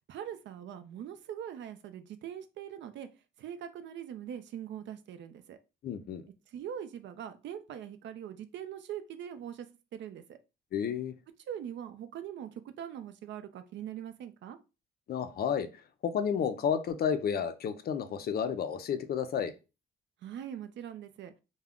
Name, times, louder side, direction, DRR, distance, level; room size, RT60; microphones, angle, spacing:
voice 1, 0.1-3.1 3.4-5.6 6.5-9.7 9.9-10.4 11.5-14.6 20.2-21.3, right 9 dB, 65° right, 0.4 m, -42 dB
voice 2, 5.8-6.2 10.7-11.1 15.1-15.7 16.0-19.5, left 7 dB, 50° left, 0.4 m, -31 dB
2.3 x 2.1 x 3.5 m
cardioid pair, 90°, 20 cm